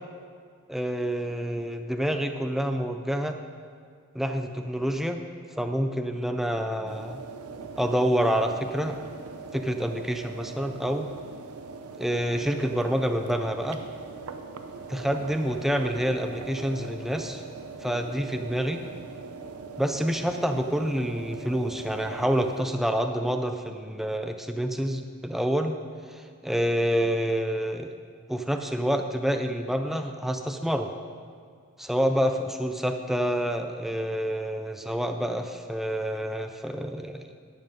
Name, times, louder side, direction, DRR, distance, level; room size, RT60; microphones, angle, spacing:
voice 1, 0.7-3.4 4.1-5.2 5.6-7.2 7.8-9.0 9.5-11.1 12.0-13.8 14.9-17.4 17.8-18.8 19.8-25.8 26.1-27.9 28.3-30.9 31.8-37.3, equal, ahead, 6 dB, 0.4 m, -27 dB
sound 1, 6.9-22.6, right 4 dB, 80° right, 0.7 m, -41 dB
11.0 x 7.7 x 5.2 m, 2.1 s
head